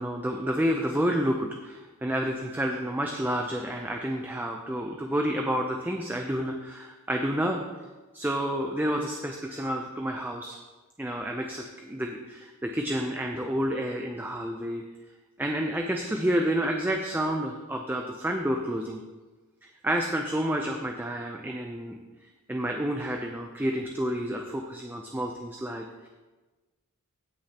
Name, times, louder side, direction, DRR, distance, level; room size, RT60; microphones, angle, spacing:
voice 1, 0.0-7.6 8.1-10.6 11.0-14.8 15.4-19.0 19.8-22.0 22.5-26.1, equal, 10° right, 2 dB, 0.5 m, -29 dB
16.0 x 6.4 x 2.9 m, 1.2 s
head